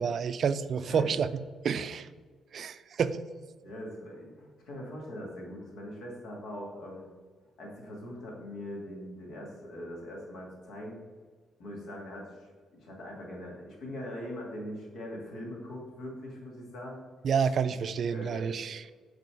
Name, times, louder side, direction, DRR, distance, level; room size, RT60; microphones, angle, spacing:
voice 1, 0.0-2.1 2.5-3.2 17.2-18.8, right 6 dB, 55° right, 13 dB, 0.3 m, -29 dB
voice 2, 3.6-7.1 7.6-11.0 11.6-17.1 18.0-18.5, left 1 dB, 75° left, -1 dB, 2.0 m, -41 dB
6.9 x 3.9 x 4.7 m, 1.5 s
cardioid pair, 90°, 0 cm